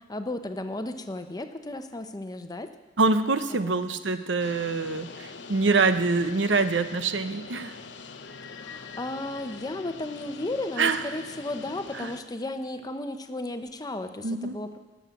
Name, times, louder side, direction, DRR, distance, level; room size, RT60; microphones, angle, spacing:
voice 1, 0.1-2.7 3.5-3.8 8.4-14.8, left 2 dB, 20° left, 8 dB, 0.7 m, -34 dB
voice 2, 3.0-7.8 10.8-11.0 11.9-12.1 14.2-14.6, right 3 dB, 85° right, 10 dB, 0.8 m, -25 dB
sound 1, 4.4-12.2, left 4 dB, 70° left, 0.8 m, -43 dB
18.5 x 7.3 x 7.0 m, 1.2 s
head